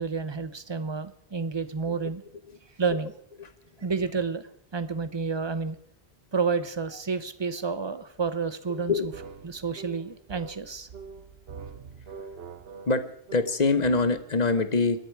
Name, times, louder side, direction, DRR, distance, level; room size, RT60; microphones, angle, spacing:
voice 1, 0.0-2.2 2.8-3.1 3.8-4.5 4.7-5.8 6.3-8.9 9.4-10.9, right 5 dB, 30° right, 13 dB, 0.7 m, -30 dB
voice 2, 8.7-9.1 12.9-15.0, left 3 dB, 40° left, 11 dB, 1.1 m, -25 dB
sound 1, 8.7-14.2, right 5 dB, 65° right, 1.0 m, -44 dB
27.0 x 10.5 x 4.7 m, 0.68 s
omnidirectional pair, 1.1 m